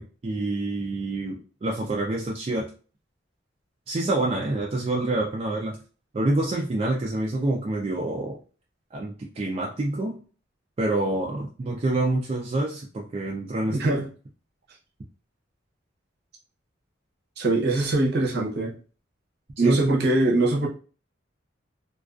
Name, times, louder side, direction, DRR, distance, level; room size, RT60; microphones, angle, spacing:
voice 1, 0.0-2.7 3.9-5.8 6.1-8.4 8.9-10.2 10.8-14.0 19.6-19.8, right 2 dB, 30° right, 0.3 m, -27 dB
voice 2, 13.7-14.1 17.4-18.8 19.6-20.7, right 2 dB, 60° right, 0.7 m, -22 dB
2.3 x 2.3 x 2.3 m
head